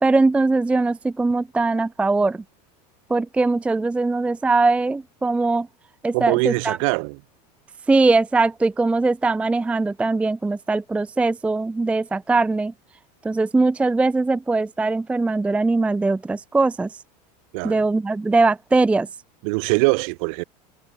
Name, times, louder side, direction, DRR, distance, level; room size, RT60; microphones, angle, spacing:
voice 1, 0.0-2.4 3.1-5.7 6.0-6.8 7.9-12.7 13.2-16.9 17.6-19.1, right 3 dB, 5° right, 0.5 m, -21 dB
voice 2, 6.1-7.2 17.5-17.8 19.4-20.4, right 32 dB, 60° right, 3.4 m, -22 dB
supercardioid pair, 155°, 20 cm